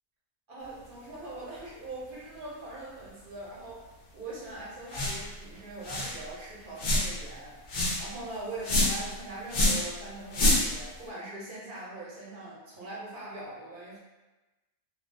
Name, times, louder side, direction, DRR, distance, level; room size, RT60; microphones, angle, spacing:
voice 1, 0.5-3.9 4.1-14.0, right 2 dB, 50° right, -7 dB, 0.7 m, -42 dB
sound 1, 4.9-5.3 5.5-5.6 5.8-6.2 6.8-7.2 7.7-8.1 8.6-9.1 9.5-9.9 10.3-10.8, left 1 dB, 65° left, 0.6 m, -26 dB
2.3 x 2.1 x 2.4 m, 1.1 s
omnidirectional pair, 1.4 m